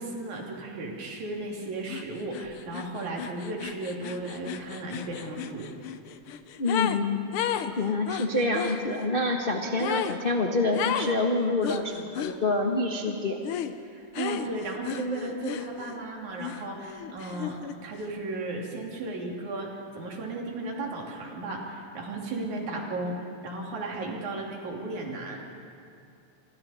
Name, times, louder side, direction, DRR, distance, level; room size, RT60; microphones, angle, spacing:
voice 1, 0.0-5.7 13.8-23.2 23.4-25.4, right 2 dB, 75° right, -1 dB, 4.1 m, -35 dB
sound 1, 1.9-2.0 2.3-7.0 7.3-8.8 9.8-10.2 10.7-11.1 11.6-12.4 13.4-13.7 14.1-16.0 16.4-17.8, left 9 dB, 75° left, 1.2 m, -33 dB
voice 2, 6.6-7.2 7.8-13.4, left 2 dB, 60° left, 0 dB, 0.5 m, -27 dB
27.5 x 25.0 x 4.3 m, 2.5 s
omnidirectional pair, 3.4 m